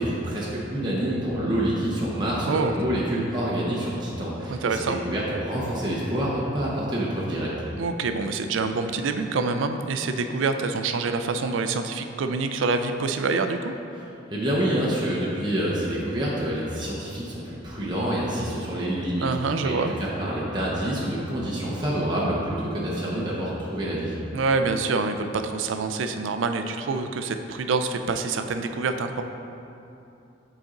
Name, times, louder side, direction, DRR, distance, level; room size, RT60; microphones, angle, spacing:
voice 1, 0.0-7.5 14.3-24.1, right 1 dB, 25° right, -6 dB, 0.8 m, -27 dB
voice 2, 4.5-5.0 7.8-13.7 19.2-19.9 24.3-29.2, right 4 dB, 80° right, 7 dB, 0.4 m, -26 dB
7.9 x 4.1 x 3.8 m, 2.7 s
head